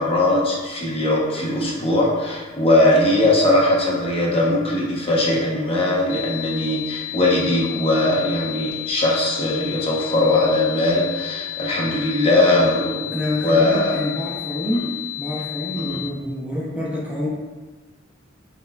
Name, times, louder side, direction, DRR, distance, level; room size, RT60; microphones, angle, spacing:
voice 1, 0.0-13.2 13.4-13.9 14.7-14.8 15.7-16.0, left 1 dB, 30° left, -3 dB, 0.7 m, -20 dB
sound 1, 6.1-16.1, left 17 dB, 80° left, 0.5 m, -32 dB
voice 2, 13.1-14.9 15.2-17.3, left 1 dB, 5° right, -5 dB, 0.5 m, -27 dB
5.5 x 3.4 x 2.2 m, 1.3 s
head